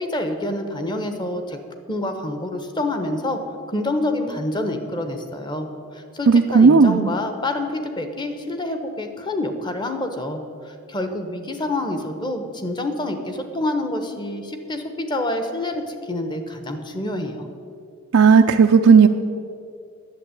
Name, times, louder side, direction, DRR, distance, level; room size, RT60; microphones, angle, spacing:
voice 1, 0.0-1.6 1.9-3.4 3.7-5.7 5.9-10.4 10.6-17.5, left 1 dB, 20° left, 6 dB, 1.1 m, -27 dB
voice 2, 6.3-7.1 18.1-19.1, right 5 dB, 70° right, 4 dB, 0.5 m, -13 dB
11.0 x 7.3 x 9.7 m, 2.4 s
head